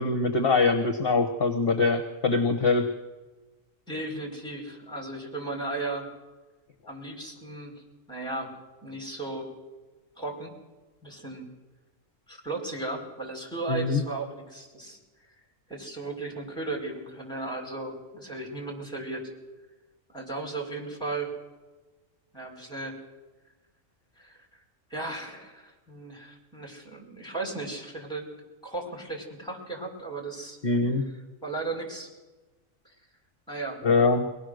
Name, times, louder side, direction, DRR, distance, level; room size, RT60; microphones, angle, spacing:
voice 1, 0.0-2.9 13.7-14.0 30.6-31.0 33.8-34.3, left 3 dB, 45° left, 6 dB, 1.3 m, -23 dB
voice 2, 3.9-6.1 6.9-8.5 8.8-9.5 10.2-10.5 11.0-11.5 12.3-15.0 15.7-19.2 20.1-21.3 22.3-23.0 24.2-24.6 24.9-28.3 28.6-30.9 31.4-32.1 32.8-32.9 33.5-33.8, right 2 dB, 5° left, 1 dB, 4.8 m, -36 dB
23.0 x 18.5 x 6.5 m, 1.2 s
omnidirectional pair, 1.4 m